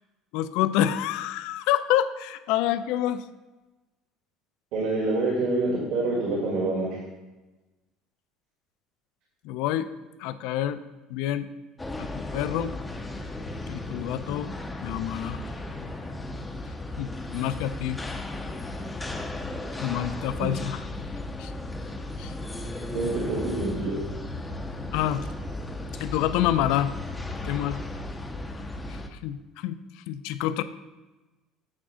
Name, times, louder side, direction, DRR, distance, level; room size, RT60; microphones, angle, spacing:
voice 1, 0.3-3.2 9.4-9.9 10.2-10.8 11.1-11.5 12.0-12.7 13.7-14.5 14.8-15.4 17.0-18.0 19.8-20.8 21.4-21.5 22.2-22.3 24.9-25.2 26.0-26.9 27.4-27.8 28.9-29.7 30.1-30.6, left 12 dB, 70° left, 13 dB, 0.4 m, -27 dB
voice 2, 4.7-7.0 22.9-24.0, right 2 dB, 60° right, -4 dB, 1.7 m, -26 dB
sound 1, 11.8-29.1, left 2 dB, 10° left, 0.5 m, -35 dB
8.6 x 3.6 x 6.2 m, 1.1 s
cardioid pair, 165°, 0 cm